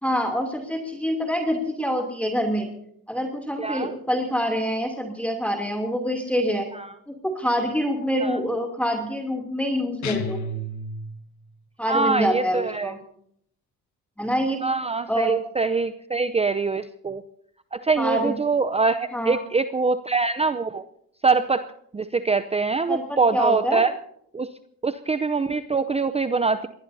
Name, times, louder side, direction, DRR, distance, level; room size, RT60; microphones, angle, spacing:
voice 1, 0.0-2.7 3.1-6.7 7.1-10.4 11.8-13.0 14.2-14.6 15.1-15.3 18.0-18.3 19.1-19.4 22.9-23.8, equal, 5° left, 1 dB, 2.9 m, -26 dB
voice 2, 3.6-3.9 6.7-6.9 8.2-8.4 11.9-12.9 14.6-17.2 17.7-20.8 21.2-21.6 21.9-23.9 24.3-24.5 24.8-26.7, right 4 dB, 15° right, 11 dB, 0.6 m, -24 dB
sound 1, 10.0-11.4, left 2 dB, 50° left, 1.5 m, -31 dB
24.5 x 20.0 x 2.7 m, 0.69 s
cardioid pair, 100°, 36 cm